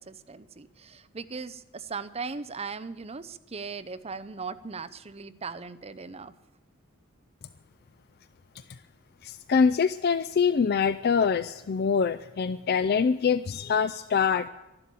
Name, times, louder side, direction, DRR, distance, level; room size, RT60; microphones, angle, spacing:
voice 1, 0.0-6.3, right 4 dB, 30° right, 11 dB, 0.6 m, -38 dB
voice 2, 9.2-14.5, left 6 dB, 50° left, 14 dB, 0.4 m, -24 dB
12.0 x 11.5 x 8.4 m, 0.99 s
head